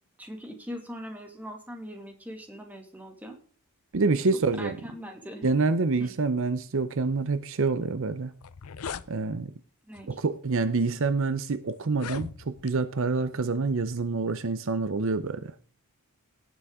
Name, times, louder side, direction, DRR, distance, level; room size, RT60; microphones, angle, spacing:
voice 1, 0.2-3.4 4.6-5.5 6.0-6.1 9.8-10.2, equal, 10° right, 3 dB, 2.1 m, -41 dB
voice 2, 3.9-4.8 5.4-8.3 9.1-9.5 10.1-15.5, right 3 dB, 60° right, 12 dB, 0.7 m, -27 dB
sound 1, 8.0-8.1 8.3-9.1 9.9-10.2 10.9-11.0 11.8-12.8, left 6 dB, 85° left, 0.6 m, -38 dB
18.0 x 7.1 x 3.7 m, 0.39 s
head